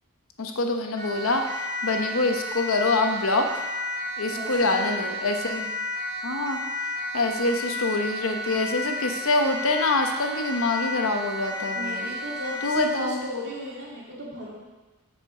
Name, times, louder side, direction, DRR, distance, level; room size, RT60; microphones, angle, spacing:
voice 1, 0.4-1.4 1.8-3.6 4.2-5.7 6.2-6.6 7.1-12.1 12.6-13.2, left 2 dB, 70° left, 4 dB, 1.0 m, -25 dB
Siren, 1.0-12.9, left 1 dB, 20° left, 1.7 m, -32 dB
voice 2, 4.3-5.4 11.7-14.5, left 1 dB, 50° right, -4 dB, 2.5 m, -36 dB
8.2 x 5.1 x 6.4 m, 1.2 s
head